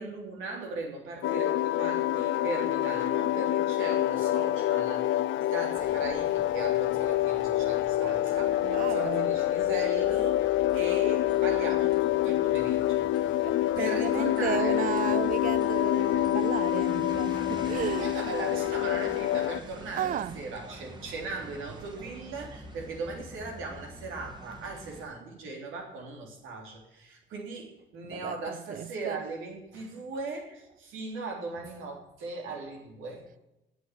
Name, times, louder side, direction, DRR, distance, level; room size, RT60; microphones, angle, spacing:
voice 1, 0.0-13.1 13.7-14.9 17.8-33.4, right 3 dB, 85° right, 3.4 m, -38 dB
sound 1, 1.2-19.6, left 14 dB, 80° left, 0.5 m, -27 dB
sound 2, 5.7-25.0, right 2 dB, 20° right, 1.9 m, -47 dB
voice 2, 8.6-9.3 13.4-18.2 19.9-20.4 28.0-29.2, right 10 dB, 45° right, 0.4 m, -34 dB
9.5 x 7.7 x 9.3 m
cardioid pair, 90°, 20 cm